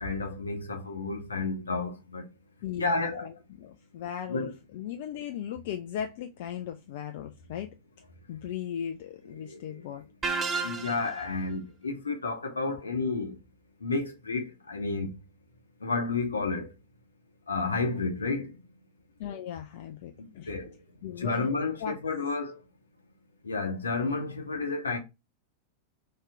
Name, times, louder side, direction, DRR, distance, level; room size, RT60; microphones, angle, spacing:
voice 1, 0.0-2.2 2.8-3.3 4.3-4.5 9.4-9.8 10.6-13.4 13.8-15.1 15.8-16.7 17.5-18.6 20.2-20.7 21.2-22.6 23.4-25.0, left 3 dB, 75° left, 0.7 m, -31 dB
voice 2, 2.6-7.7 8.3-10.0 19.2-20.5 21.0-22.0, left 9 dB, 50° left, 0.3 m, -37 dB
sound 1, 10.2-11.3, right 4 dB, 20° right, 0.6 m, -31 dB
3.1 x 2.9 x 3.4 m
figure-of-eight pair, 90°, 0 cm